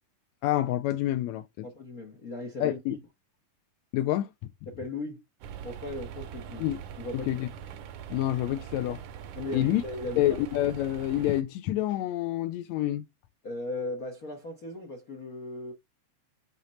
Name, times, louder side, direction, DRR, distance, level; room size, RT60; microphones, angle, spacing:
voice 1, 0.4-1.7 2.6-3.0 3.9-4.3 6.6-6.8 7.1-7.5 8.1-9.0 9.5-9.8 10.2-13.1, left 13 dB, 80° left, 1.6 m, -27 dB
voice 2, 1.6-3.0 4.7-5.2 5.6-6.7 7.0-7.3 9.3-10.3 13.4-15.7, left 2 dB, 65° left, 0.8 m, -37 dB
sound 1, 5.4-11.4, right 9 dB, 75° right, 2.2 m, -42 dB
8.2 x 3.1 x 4.1 m
omnidirectional pair, 3.7 m